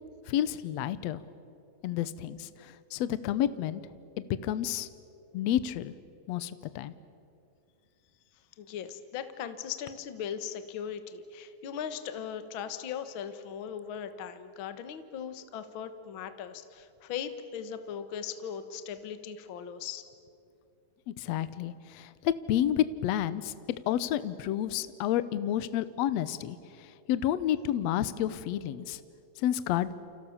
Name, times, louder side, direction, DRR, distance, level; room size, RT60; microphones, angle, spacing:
voice 1, 0.3-1.2 1.8-3.8 4.2-4.9 5.3-5.9 6.3-6.9 21.1-23.5 23.9-29.0 29.4-29.9, left 11 dB, 90° left, 14 dB, 1.5 m, -30 dB
voice 2, 8.6-20.1, left 8 dB, 70° left, 10 dB, 1.2 m, -39 dB
29.0 x 28.0 x 7.2 m, 2.6 s
omnidirectional pair, 4.3 m